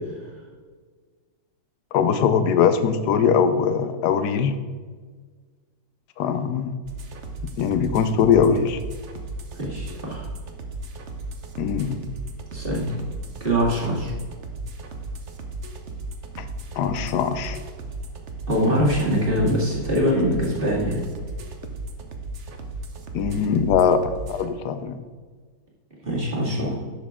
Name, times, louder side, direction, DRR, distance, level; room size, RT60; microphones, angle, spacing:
voice 1, 1.9-4.5 6.2-6.7 7.6-8.8 11.6-12.0 16.4-16.5 16.8-17.6 23.1-25.0, left 7 dB, 65° left, 10 dB, 1.1 m, -21 dB
sound 1, 6.8-24.5, right 2 dB, 50° right, 0.9 m, -35 dB
voice 2, 9.6-10.3 12.5-12.9 13.4-14.1 18.5-21.0 26.0-26.7, equal, 30° right, -4 dB, 2.3 m, -23 dB
11.0 x 6.4 x 3.7 m, 1.5 s
omnidirectional pair, 2.1 m